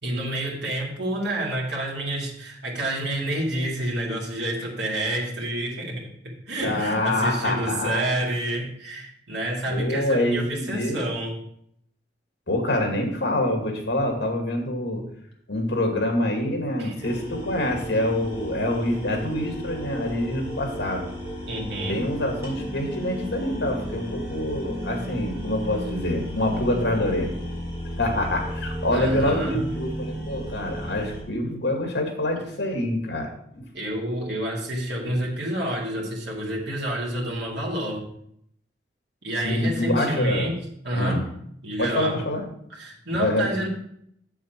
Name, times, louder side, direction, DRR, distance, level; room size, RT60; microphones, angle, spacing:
voice 1, 0.0-11.4 16.8-17.1 21.5-22.1 28.9-29.6 33.7-38.1 39.2-40.6 40.8-41.2 41.6-42.2 42.8-43.7, right 1 dB, 75° right, -3 dB, 2.2 m, -28 dB
voice 2, 6.6-8.1 9.7-11.0 12.5-15.0 15.5-21.0 21.8-27.3 28.0-33.6 35.1-35.2 39.4-40.5 40.9-41.2 41.8-42.4 43.2-43.5, left 1 dB, 75° left, 2 dB, 2.1 m, -26 dB
sound 1, 17.0-31.2, equal, 15° right, 3.5 m, -34 dB
7.4 x 7.2 x 4.4 m, 0.70 s
head